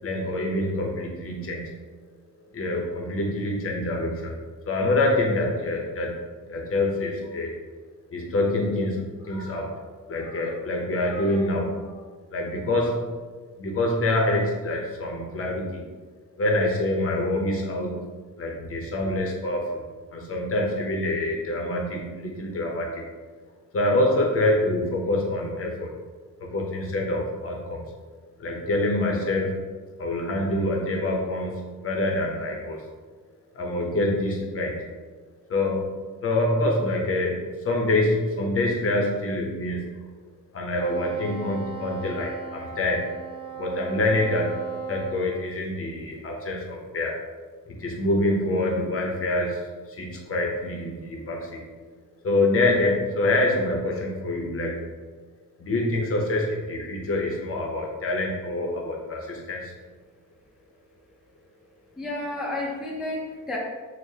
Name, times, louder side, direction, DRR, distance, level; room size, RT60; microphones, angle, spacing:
voice 1, 0.0-1.8 2.5-4.4 4.7-6.2 6.5-7.6 8.1-9.8 10.1-13.2 13.6-15.8 16.4-18.1 18.4-23.0 23.7-25.9 26.4-27.8 28.4-29.6 30.0-32.9 33.5-34.8 35.5-35.9 36.2-40.0 40.5-43.1 43.6-47.2 47.7-51.6 52.2-54.8 55.6-59.7, left 2 dB, 40° left, 0 dB, 0.6 m, -26 dB
Wind instrument woodwind instrument, 40.8-45.3, right 6 dB, 15° left, 0.9 m, -36 dB
voice 2, 62.0-63.6, left 2 dB, ahead, -4 dB, 0.4 m, -31 dB
6.3 x 2.1 x 2.7 m, 1.4 s
wide cardioid pair, 165°, 34 cm